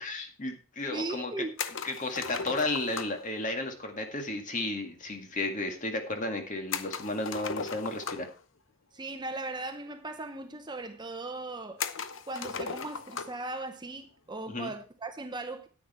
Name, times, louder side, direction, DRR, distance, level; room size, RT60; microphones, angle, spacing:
voice 1, 0.0-1.5 1.8-8.3 14.5-14.7, left 2 dB, 40° left, 2.0 m, -33 dB
voice 2, 0.9-1.5 8.9-11.9 12.3-15.7, right 2 dB, 20° right, 0.8 m, -38 dB
sound 1, 1.6-3.3 6.7-8.4 9.5-9.6 9.9-10.0 10.7-10.8 11.8-13.4, left 5 dB, 65° left, 0.8 m, -37 dB
10.0 x 8.9 x 4.3 m
head